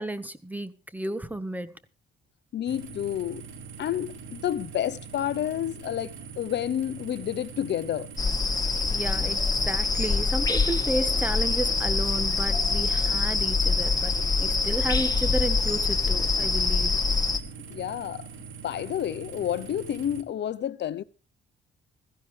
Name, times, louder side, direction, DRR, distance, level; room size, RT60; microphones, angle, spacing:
voice 1, 0.0-1.7 8.9-9.4 9.7-16.9, right 1 dB, 10° right, 1.4 m, -32 dB
voice 2, 2.5-3.5 3.8-8.1 17.7-18.3 18.6-21.0, left 10 dB, 60° left, 0.8 m, -30 dB
sound 1, 2.7-20.2, right 6 dB, 75° right, 2.0 m, -43 dB
sound 2, 8.2-17.4, left 4 dB, 20° left, 1.6 m, -25 dB
16.0 x 15.0 x 3.3 m
cardioid pair, 90°, 20 cm